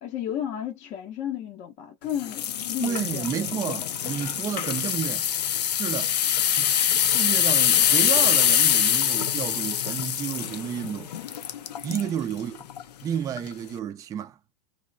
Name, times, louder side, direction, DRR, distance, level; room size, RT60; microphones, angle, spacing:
voice 1, 0.0-3.8 11.9-12.2, left 10 dB, 35° left, 0.6 m, -34 dB
sound 1, 2.2-12.1 12.6-12.8 13.4-13.5, left 9 dB, 90° left, 0.5 m, -24 dB
voice 2, 2.8-5.3 5.7-6.2 6.5-11.1 11.8-12.6 13.0-14.4, right 9 dB, 15° right, 0.3 m, -31 dB
3.0 x 2.0 x 2.5 m
hypercardioid pair, 120°, 20 cm